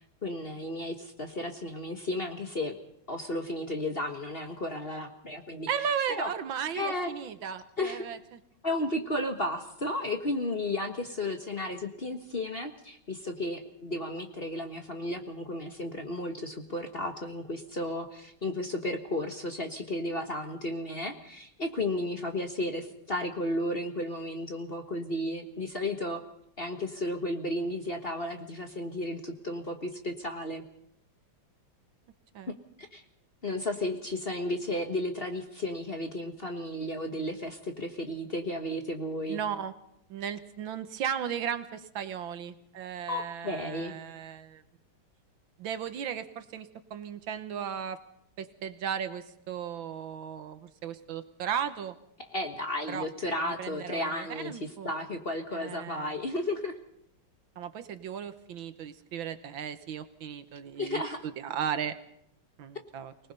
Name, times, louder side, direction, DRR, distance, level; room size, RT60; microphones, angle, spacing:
voice 1, 0.2-2.7 3.1-5.7 6.1-6.3 6.7-7.1 7.8-8.1 8.6-26.2 26.6-30.6 32.9-33.0 33.4-39.4 43.1-43.9 52.3-56.8 60.8-61.2, left 1 dB, 30° left, 5 dB, 1.4 m, -33 dB
voice 2, 5.7-8.2 32.3-32.5 39.3-39.7 40.1-44.6 45.6-48.0 48.4-52.0 52.9-53.1 53.4-54.9 55.5-56.1 57.6-61.9 62.6-63.1, right 8 dB, 70° right, 11 dB, 1.7 m, -36 dB
25.0 x 19.0 x 5.4 m, 0.72 s
omnidirectional pair, 2.3 m